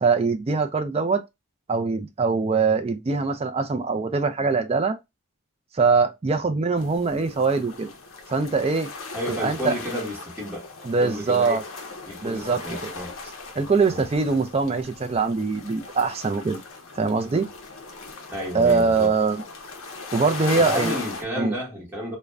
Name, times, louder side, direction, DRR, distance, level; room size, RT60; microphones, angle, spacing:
voice 1, 0.0-1.2 1.7-5.0 5.7-7.9 8.3-8.9 9.3-9.7 10.8-11.6 12.2-12.9 13.5-16.6 17.0-17.5 18.5-19.4 20.1-21.0 21.4-21.6, right 4 dB, 25° right, 0.3 m, -23 dB
sound 1, 6.8-21.2, left 3 dB, 65° left, 0.6 m, -38 dB
voice 2, 9.1-10.7 11.0-11.6 12.0-13.1 13.9-14.0 18.3-19.1 20.5-22.2, equal, 10° right, 1.1 m, -31 dB
2.4 x 2.1 x 3.2 m
head